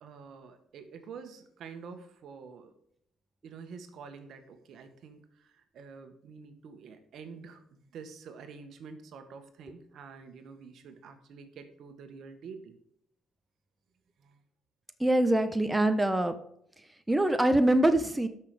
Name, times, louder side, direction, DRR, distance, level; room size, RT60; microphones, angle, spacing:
voice 1, 0.0-2.7 3.4-12.8 14.2-14.4, right 5 dB, 65° right, 8 dB, 1.5 m, -48 dB
voice 2, 15.0-16.4 17.1-18.3, right 1 dB, 10° right, 9 dB, 1.0 m, -24 dB
12.5 x 6.0 x 5.1 m, 0.71 s
supercardioid pair, 80°, 0 cm